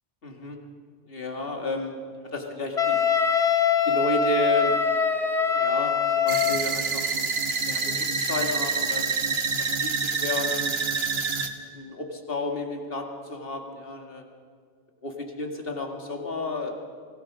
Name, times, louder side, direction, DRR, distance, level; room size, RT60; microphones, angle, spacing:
voice 1, 0.2-0.6 1.1-2.0 2.3-3.1 3.9-4.8 5.5-7.3 7.6-9.1 9.6-10.8 11.7-14.3 15.0-16.8, left 2 dB, 65° left, 3 dB, 2.2 m, -32 dB
Wind instrument woodwind instrument, 2.8-6.7, left 6 dB, 35° left, 1.3 m, -23 dB
sound 1, 6.3-11.5, right 4 dB, 75° right, 1.6 m, -27 dB
24.5 x 17.0 x 6.2 m, 2.1 s
omnidirectional pair, 1.1 m